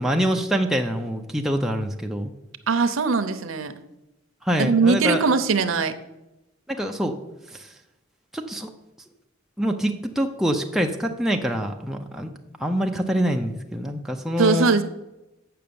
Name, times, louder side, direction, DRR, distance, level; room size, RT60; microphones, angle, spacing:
voice 1, 0.0-2.3 4.4-5.2 6.7-7.1 7.5-7.7 8.3-8.7 9.6-12.3 12.6-14.7, equal, ahead, 2 dB, 0.6 m, -25 dB
voice 2, 2.7-3.7 4.6-5.9 14.4-14.8, right 4 dB, 85° right, 11 dB, 0.7 m, -20 dB
7.7 x 5.9 x 6.9 m, 0.95 s
head